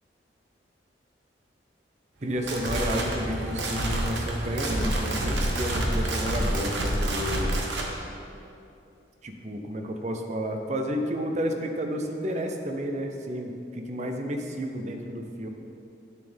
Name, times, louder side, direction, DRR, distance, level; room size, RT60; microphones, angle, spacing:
voice 1, 2.2-7.5 9.2-15.5, equal, 40° right, 4 dB, 0.6 m, -31 dB
sound 1, 2.2-7.9, right 1 dB, 75° right, 1.0 m, -28 dB
9.2 x 6.9 x 3.5 m, 2.6 s
head